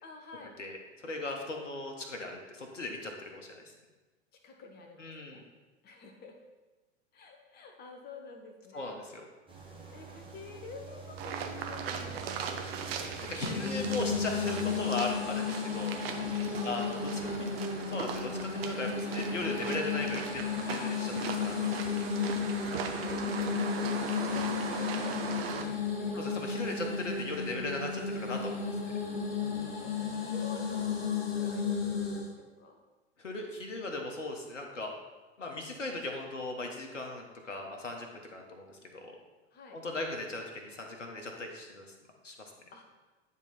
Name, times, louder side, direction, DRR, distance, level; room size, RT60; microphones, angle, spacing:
voice 1, 0.0-0.6 4.4-5.4 5.8-6.3 7.1-9.2 9.5-12.7 16.5-17.5 20.6-21.0 22.6-22.7 23.0-26.3 29.5-30.0 30.3-32.8 39.5-39.8 42.7-42.9, left 4 dB, 25° left, 3 dB, 1.1 m, -50 dB
voice 2, 0.6-3.7 5.0-5.4 8.7-9.2 12.9-13.0 13.3-16.0 16.6-17.1 17.9-21.9 22.7-22.9 26.1-28.8 33.2-34.9 35.4-38.8 39.0-39.2 39.7-41.8 42.2-42.5, left 2 dB, 85° left, 2 dB, 1.1 m, -38 dB
sound 1, 9.5-14.8, right 5 dB, 15° right, 1.3 m, -45 dB
sound 2, 11.2-25.6, right 6 dB, 55° right, 0.9 m, -39 dB
sound 3, 13.4-32.3, left 6 dB, 55° left, 1.4 m, -34 dB
9.8 x 3.6 x 4.3 m, 1.2 s
figure-of-eight pair, 95°, 36 cm